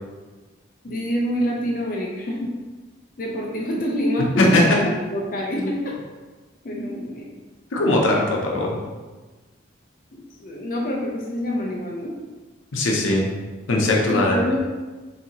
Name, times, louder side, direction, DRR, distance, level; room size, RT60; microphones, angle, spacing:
voice 1, 0.8-2.5 3.2-4.8 5.1-5.9 6.6-7.3 10.1-12.1 13.8-14.6, equal, 45° left, -3 dB, 0.5 m, -26 dB
voice 2, 7.7-8.8 12.7-13.3 13.7-14.4, left 2 dB, 85° left, -1 dB, 0.7 m, -20 dB
4.1 x 2.7 x 2.9 m, 1.3 s
head